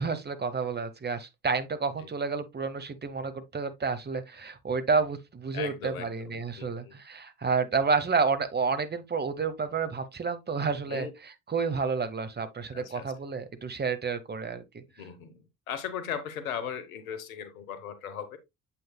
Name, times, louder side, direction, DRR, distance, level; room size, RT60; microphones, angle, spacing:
voice 1, 0.0-11.1 11.5-14.8, right 5 dB, 25° right, 1.2 m, -30 dB
voice 2, 5.5-6.9 10.9-11.1 12.7-13.1 15.0-18.4, left 8 dB, 85° left, 1.0 m, -38 dB
7.6 x 5.7 x 2.2 m
hypercardioid pair, 50°, 41 cm